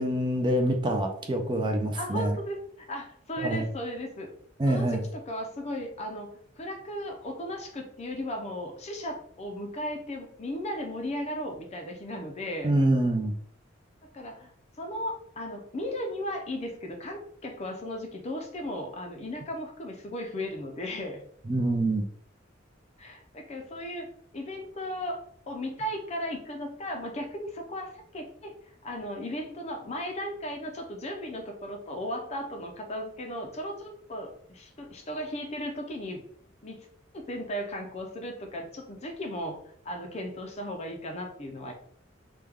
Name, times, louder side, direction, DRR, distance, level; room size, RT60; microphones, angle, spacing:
voice 1, 0.0-2.3 3.4-3.7 4.6-5.0 12.6-13.3 21.5-22.0, right 1 dB, 25° right, 3 dB, 0.4 m, -25 dB
voice 2, 1.9-4.3 4.7-12.7 14.0-14.5 14.8-21.3 23.0-24.1 24.3-25.2 25.5-28.5 28.8-36.2 36.6-36.9 37.1-41.7, equal, 35° left, 3 dB, 0.5 m, -36 dB
3.3 x 2.2 x 3.4 m, 0.65 s
head